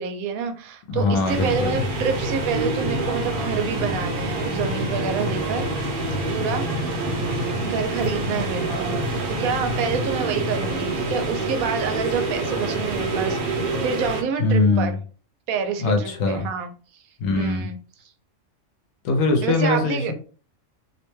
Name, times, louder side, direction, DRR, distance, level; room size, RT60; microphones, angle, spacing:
voice 1, 0.0-5.9 6.3-6.7 7.6-15.0 15.5-16.7 17.4-17.8 19.4-20.1, right 6 dB, 90° right, 6 dB, 1.0 m, -28 dB
voice 2, 0.9-1.8 14.4-15.0 15.8-16.5 17.2-17.7 19.0-20.1, left 3 dB, 75° left, 5 dB, 1.0 m, -21 dB
sound 1, 1.2-14.2, right 2 dB, 50° right, 0.7 m, -26 dB
2.7 x 2.1 x 3.1 m, 0.39 s
omnidirectional pair, 1.5 m